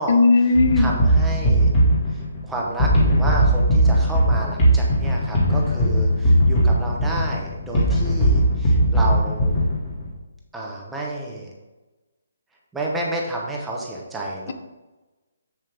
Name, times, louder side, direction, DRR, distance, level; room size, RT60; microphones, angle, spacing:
voice 1, 0.1-0.9, left 3 dB, 40° left, 10 dB, 0.7 m, -16 dB
sound 1, 0.5-10.1, right 1 dB, 15° left, 1.8 m, -19 dB
voice 2, 0.7-1.7 2.4-9.5 10.5-11.5 12.7-14.5, right 1 dB, 5° right, -3 dB, 0.9 m, -30 dB
7.5 x 7.3 x 3.4 m, 1.1 s
hypercardioid pair, 175°, 0 cm